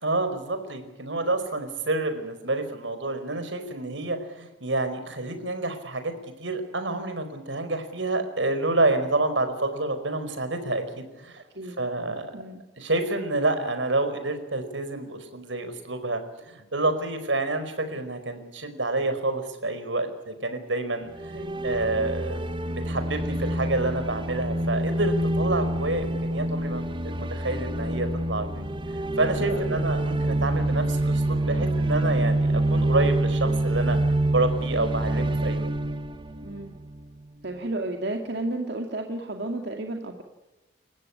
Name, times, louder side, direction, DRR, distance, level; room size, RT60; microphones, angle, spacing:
voice 1, 0.0-6.1 6.4-11.4 11.8-12.3 12.8-28.7 29.2-34.0 34.3-35.7, right 2 dB, 85° right, 9 dB, 4.7 m, -28 dB
voice 2, 11.4-11.8 12.3-12.6 21.3-21.6 29.3-29.9 36.4-36.8 37.4-40.2, right 2 dB, 65° right, 3 dB, 2.3 m, -33 dB
sound 1, 21.1-37.2, right 1 dB, 25° right, 1.0 m, -26 dB
29.5 x 15.5 x 9.8 m, 1.1 s
head